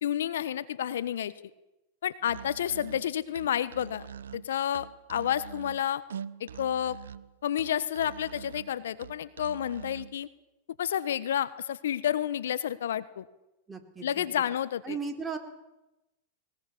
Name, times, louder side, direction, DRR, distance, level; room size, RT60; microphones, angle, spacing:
voice 1, 0.0-1.3 2.0-4.1 4.3-6.0 6.4-7.0 7.4-10.3 10.8-13.3 14.0-15.0, left 10 dB, 75° left, 16 dB, 1.2 m, -30 dB
Musical instrument, 2.2-10.2, right 8 dB, 80° right, 0.8 m, -44 dB
voice 2, 13.7-14.3 14.8-15.4, right 5 dB, 15° right, 5 dB, 3.8 m, -36 dB
21.0 x 19.5 x 8.6 m, 0.96 s
hypercardioid pair, 110°, 0 cm